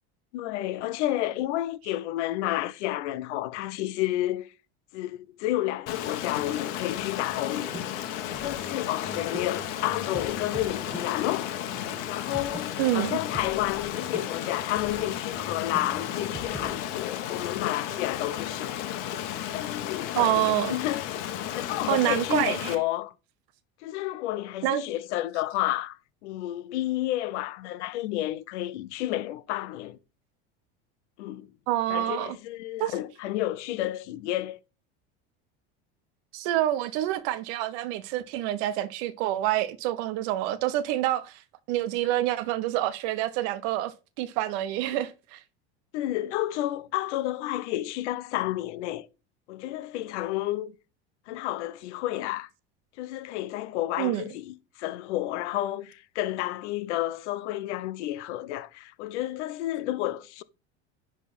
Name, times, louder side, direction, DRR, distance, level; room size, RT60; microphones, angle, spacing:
voice 1, 0.3-4.5 4.9-8.0 8.3-11.5 12.1-18.7 19.5-21.0 21.5-23.1 23.8-30.0 31.2-31.5 31.9-34.6 45.9-49.1 49.5-50.7 51.3-52.5 53.0-60.4, left 15 dB, 80° left, 0.7 m, -31 dB
Stream, 5.9-22.7, left 11 dB, 65° left, 1.3 m, -34 dB
sound 1, 7.6-16.8, right 1 dB, 5° right, 1.1 m, -43 dB
voice 2, 12.8-13.2 20.2-20.8 21.9-22.8 24.6-24.8 31.7-32.4 32.8-32.9 36.3-41.4 41.7-45.4 54.0-54.2, right 14 dB, 70° right, 1.1 m, -27 dB
10.0 x 3.6 x 4.2 m
supercardioid pair, 95°, 34 cm